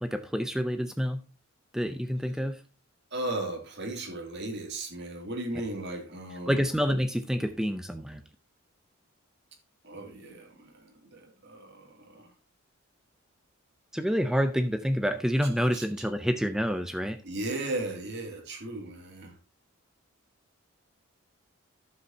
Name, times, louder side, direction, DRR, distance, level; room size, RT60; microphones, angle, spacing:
voice 1, 0.0-1.2 1.7-2.6 6.5-8.2 13.9-17.2, equal, ahead, 0.6 m, -28 dB
voice 2, 3.1-6.6 9.8-12.3 15.7-15.8 17.2-19.3, right 2 dB, 50° right, 2.6 m, -36 dB
11.5 x 7.9 x 2.8 m
head